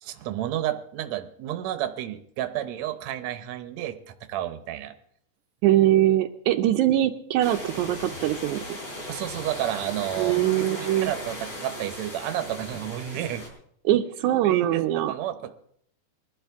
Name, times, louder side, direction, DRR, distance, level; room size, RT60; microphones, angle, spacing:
voice 1, 0.0-4.9 9.1-13.5 14.4-15.5, right 12 dB, 75° right, 9 dB, 1.6 m, -31 dB
voice 2, 5.6-8.6 10.2-11.1 13.8-15.1, right 13 dB, 90° right, 5 dB, 1.7 m, -22 dB
sound 1, 7.4-13.5, equal, 35° left, 5.7 m, -37 dB
21.5 x 12.0 x 3.5 m, 0.67 s
omnidirectional pair, 4.3 m